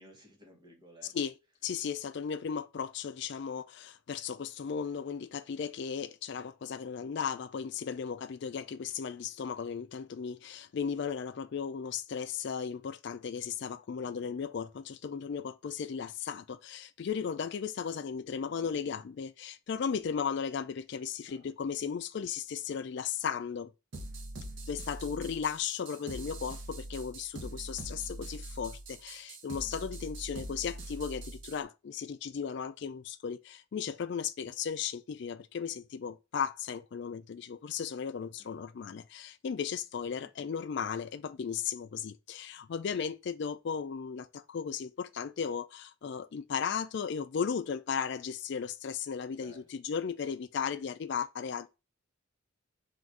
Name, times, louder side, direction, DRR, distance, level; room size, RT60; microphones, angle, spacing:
voice 1, 0.0-1.2 14.0-14.3 21.3-21.8 25.0-25.1 49.3-49.9, right 1 dB, 20° right, 1.0 m, -57 dB
voice 2, 1.6-23.7 24.7-51.7, left 7 dB, 55° left, 0.3 m, -36 dB
sound 1, 23.9-31.6, right 1 dB, 60° right, 0.7 m, -43 dB
3.9 x 2.5 x 4.5 m
head